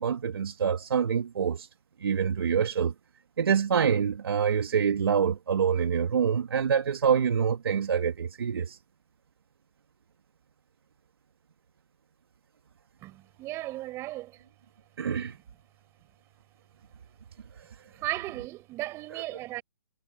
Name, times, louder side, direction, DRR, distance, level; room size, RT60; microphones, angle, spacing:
voice 1, 0.0-1.7 2.0-2.9 3.4-8.8 15.0-15.4 17.6-17.7, right 7 dB, 65° right, 2.1 m, -26 dB
voice 2, 13.0-14.4 17.9-19.6, right 17 dB, 20° right, 7.9 m, -36 dB
hypercardioid pair, 145°, 13 cm